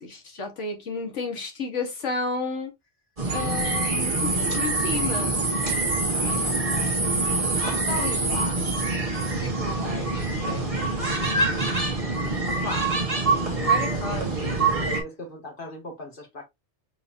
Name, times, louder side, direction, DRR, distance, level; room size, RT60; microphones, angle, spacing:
voice 1, 0.0-2.7 3.3-5.4 12.6-12.9 13.5-14.4, left 4 dB, 80° left, 1.7 m, -32 dB
sound 1, 3.2-15.0, right 3 dB, 30° right, 1.5 m, -25 dB
voice 2, 6.0-7.1 7.6-8.6 9.4-10.9 14.8-16.4, left 2 dB, 45° left, 2.1 m, -38 dB
4.7 x 3.8 x 2.7 m
omnidirectional pair, 1.2 m